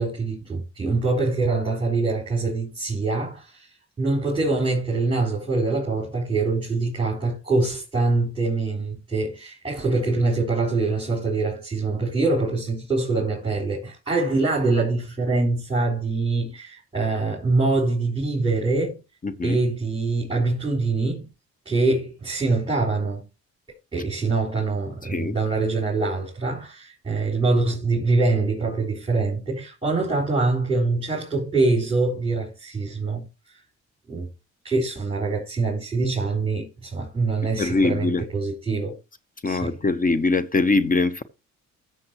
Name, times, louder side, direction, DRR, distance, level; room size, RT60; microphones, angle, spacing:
voice 1, 0.0-3.7 4.0-19.0 19.4-21.3 21.6-23.2 23.9-33.2 34.1-34.3 34.6-39.0 39.4-39.8, right 3 dB, 20° right, 4.8 m, -24 dB
voice 2, 19.2-19.6 25.1-25.3 37.6-38.2 39.4-41.2, left 3 dB, 25° left, 0.9 m, -22 dB
13.5 x 7.4 x 3.1 m
cardioid pair, 90°, 30 cm